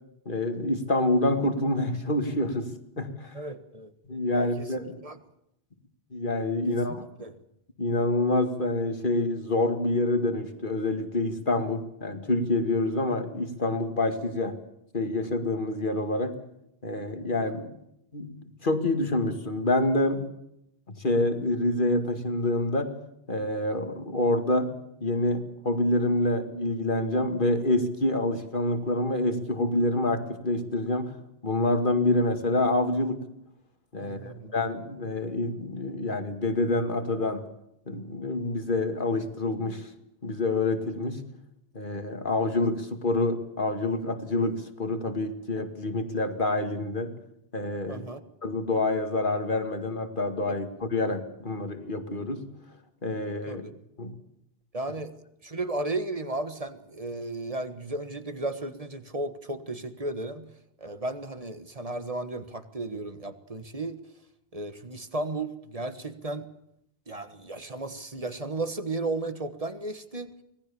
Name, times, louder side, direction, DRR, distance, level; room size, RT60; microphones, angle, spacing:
voice 1, 0.3-2.7 3.0-3.4 4.1-5.0 6.1-7.0 7.8-14.6 14.9-16.3 16.8-17.7 18.1-18.3 18.6-20.2 20.9-22.9 23.3-24.7 25.0-31.1 31.4-33.2 33.9-37.4 37.9-39.9 40.2-41.2 41.7-47.1 47.5-48.0 48.4-52.4 53.0-53.7 54.0-54.2, left 2 dB, 55° left, 8 dB, 2.4 m, -27 dB
voice 2, 3.3-3.9 4.3-4.7 5.0-5.2 6.7-7.3 34.0-34.6 47.9-48.2 53.5-53.7 54.7-60.5 60.8-64.0 64.5-66.5 67.1-70.3, right 2 dB, 35° right, 10 dB, 1.7 m, -34 dB
25.0 x 19.0 x 7.1 m, 0.80 s
omnidirectional pair, 1.0 m